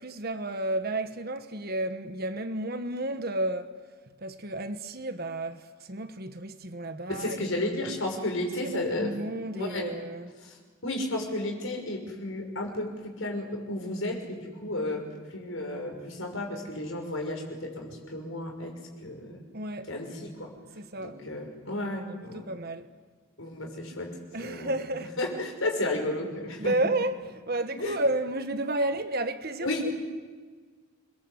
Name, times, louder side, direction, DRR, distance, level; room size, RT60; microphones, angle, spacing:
voice 1, 0.0-3.8 4.2-7.6 8.6-10.3 19.5-19.9 20.8-21.2 21.7-22.9 24.3-25.1 26.6-29.9, right 1 dB, 45° right, 1.3 m, -32 dB
voice 2, 7.1-9.1 9.5-9.9 10.4-10.6 10.8-15.0 15.3-18.7 19.0-19.4 19.9-20.5 21.0-22.5 23.4-24.8 25.2-26.7 27.8-28.0 29.6-29.9, left 1 dB, 65° left, 6.1 m, -33 dB
28.5 x 22.0 x 8.1 m
head